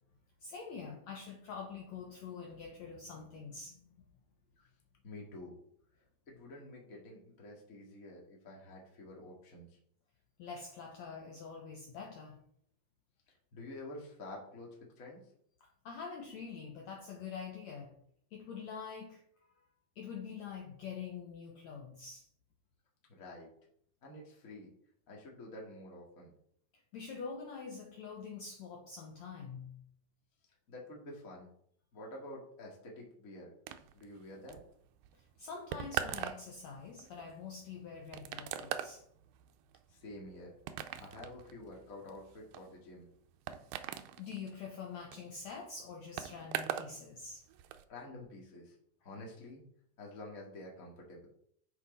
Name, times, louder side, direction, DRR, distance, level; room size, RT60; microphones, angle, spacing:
voice 1, 0.4-3.9 10.4-12.4 15.9-18.0 18.3-19.6 20.0-22.3 26.9-29.8 35.1-39.0 44.2-47.5, left 5 dB, 70° left, 0 dB, 1.9 m, -45 dB
voice 2, 5.0-5.5 6.3-9.6 13.5-15.2 23.1-23.5 24.0-24.7 25.1-26.3 30.7-31.5 31.9-33.5 33.9-34.6 39.9-40.5 41.0-43.1 47.9-48.7 49.0-49.6 50.0-51.3, left 1 dB, 30° left, -1 dB, 1.7 m, -49 dB
sound 1, 33.7-47.0 47.2-47.8, right 11 dB, 85° right, 2.3 m, -42 dB
10.0 x 4.8 x 4.0 m, 0.67 s
omnidirectional pair, 4.0 m